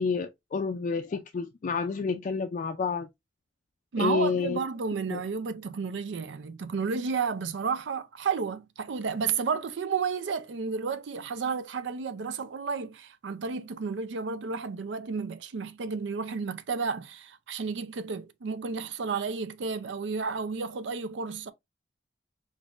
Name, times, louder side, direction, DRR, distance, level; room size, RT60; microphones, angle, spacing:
voice 1, 0.0-3.1 4.0-4.6 5.1-5.2, left 5 dB, 45° left, 0.3 m, -29 dB
voice 2, 3.9-21.5, right 5 dB, 90° right, 0.5 m, -32 dB
5.2 x 2.5 x 2.4 m
head